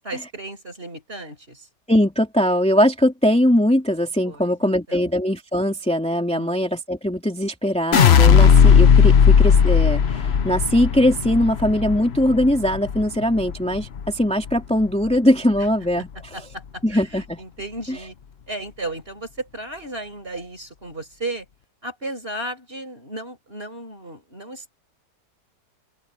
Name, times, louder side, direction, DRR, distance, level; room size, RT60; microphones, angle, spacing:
voice 1, 0.0-1.7 4.3-5.1 6.3-6.5 16.3-18.1 18.5-21.5 21.8-24.7, right 2 dB, 30° right, 5.9 m, -34 dB
voice 2, 1.9-16.4 16.8-17.4 17.9-18.0, equal, 5° left, 2.9 m, -21 dB
sound 1, 7.9-14.1 14.5-15.1, left 7 dB, 45° left, 0.9 m, -16 dB
open air
omnidirectional pair, 1.9 m